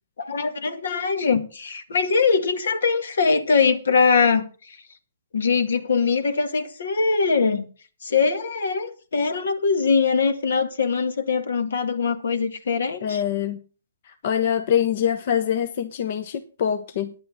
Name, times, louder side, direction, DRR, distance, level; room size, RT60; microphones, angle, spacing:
voice 1, 0.2-4.8 5.3-7.7 8.0-13.2, left 5 dB, 80° left, 1.9 m, -22 dB
voice 2, 13.0-13.6 14.0-17.1, left 9 dB, 55° left, 1.0 m, -24 dB
9.9 x 8.7 x 6.2 m
hypercardioid pair, 140°, 0 cm